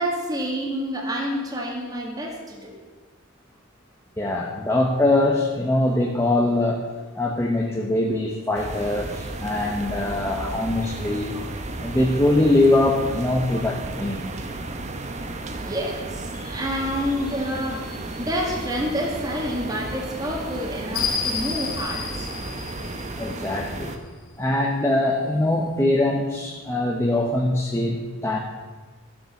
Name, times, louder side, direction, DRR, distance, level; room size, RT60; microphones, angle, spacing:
voice 1, 0.0-2.7 11.3-11.5 15.6-17.8 18.2-22.8, equal, 20° right, -2 dB, 1.8 m, -28 dB
voice 2, 4.2-6.8 7.1-11.4 11.8-14.3 23.2-23.9 24.4-28.4, left 2 dB, 15° left, -1 dB, 1.0 m, -22 dB
sound 1, 8.5-24.0, right 2 dB, 35° right, 1.0 m, -34 dB
sound 2, 16.3-23.8, left 5 dB, 45° left, 1.5 m, -34 dB
13.5 x 7.4 x 6.6 m, 1.3 s
head